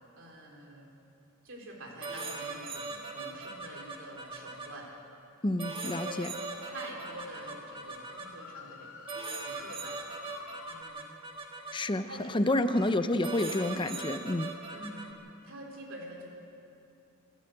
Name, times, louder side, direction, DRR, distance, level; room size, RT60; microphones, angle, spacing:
voice 1, 0.2-0.9 1.4-4.9 6.0-10.2 10.7-11.0 12.1-12.7 14.7-15.1 15.4-16.3, right 1 dB, 60° right, 0 dB, 3.8 m, -46 dB
sound 1, 2.0-4.7 5.6-8.3 9.1-11.7 12.7-12.9 13.2-15.1, right 3 dB, 25° right, 1.9 m, -40 dB
voice 2, 5.4-6.3 11.7-14.5, left 1 dB, 20° left, 10 dB, 0.7 m, -29 dB
sound 2, 5.6-10.8, left 4 dB, 60° left, 2.2 m, -50 dB
26.5 x 13.0 x 7.9 m, 2.7 s
head